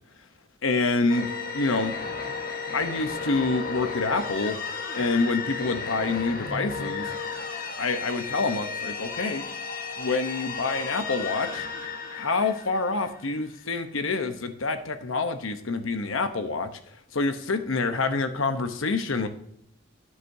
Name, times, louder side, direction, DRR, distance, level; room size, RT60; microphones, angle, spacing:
voice 1, 0.6-1.2 1.5-1.9 2.7-4.6 4.9-7.1 7.8-9.4 10.0-11.7 12.1-16.7 17.1-19.3, left 3 dB, 85° left, 8 dB, 0.9 m, -27 dB
sound 1, 1.1-13.6, left 5 dB, 45° left, 1.4 m, -34 dB
12.5 x 9.7 x 2.7 m, 0.73 s
head